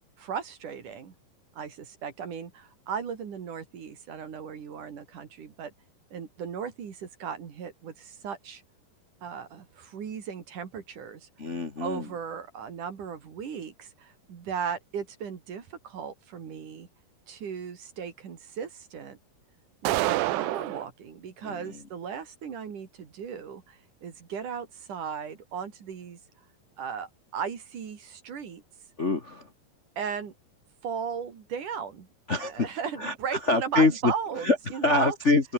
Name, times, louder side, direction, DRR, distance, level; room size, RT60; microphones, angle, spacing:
voice 1, 0.2-1.1 1.6-5.7 6.1-8.6 9.2-11.3 11.8-16.9 17.3-19.2 19.8-26.2 26.8-28.6 30.0-30.3 30.8-32.1 32.4-35.2, right 7 dB, 50° right, 3.9 m, -36 dB
voice 2, 11.4-12.1 21.4-21.8 29.0-29.5 32.3-32.7 33.0-34.1 34.4-34.6 34.8-35.5, left 3 dB, 50° left, 0.8 m, -25 dB
sound 1, 19.8-20.9, right 19 dB, 85° right, 2.8 m, -27 dB
open air
omnidirectional pair, 5.0 m